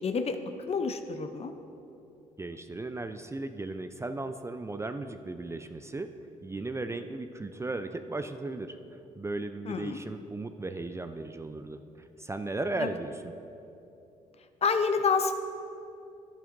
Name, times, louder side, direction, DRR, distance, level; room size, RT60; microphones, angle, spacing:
voice 1, 0.0-0.4 0.7-1.5 9.7-10.0 12.8-12.9 14.6-15.3, left 5 dB, 40° left, 8 dB, 0.6 m, -28 dB
voice 2, 2.4-6.1 6.4-8.8 9.2-13.4, right 2 dB, 15° right, 8 dB, 0.4 m, -36 dB
11.0 x 8.6 x 2.6 m, 2.9 s
supercardioid pair, 60°, 16 cm